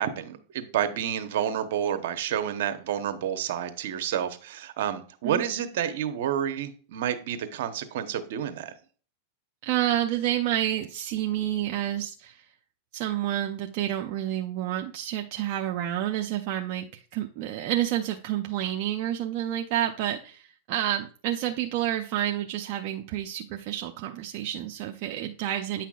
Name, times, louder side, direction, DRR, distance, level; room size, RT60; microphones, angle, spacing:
voice 1, 0.0-8.7, right 9 dB, 70° right, 9 dB, 1.0 m, -29 dB
voice 2, 9.6-12.5 12.9-25.8, right 12 dB, 55° right, 4 dB, 0.6 m, -29 dB
9.2 x 5.8 x 2.4 m, 0.41 s
hypercardioid pair, 125°, 0 cm